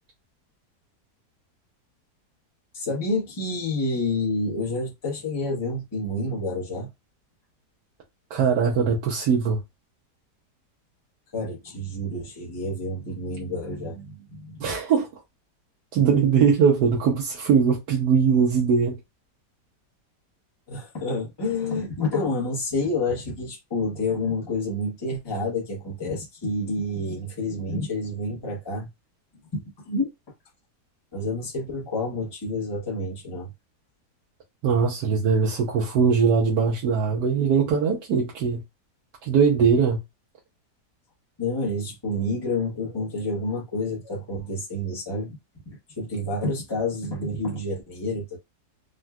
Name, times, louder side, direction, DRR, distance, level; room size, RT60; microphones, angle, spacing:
voice 1, 2.7-6.9 11.3-14.7 20.7-28.9 29.5-30.1 31.1-33.5 41.4-45.4 45.7-48.4, left 2 dB, 30° left, 0.4 m, -29 dB
voice 2, 8.3-9.6 14.6-15.2 15.9-19.0 34.6-38.6 39.2-40.0, right 6 dB, 80° right, 1.4 m, -21 dB
3.7 x 2.2 x 2.2 m
omnidirectional pair, 1.8 m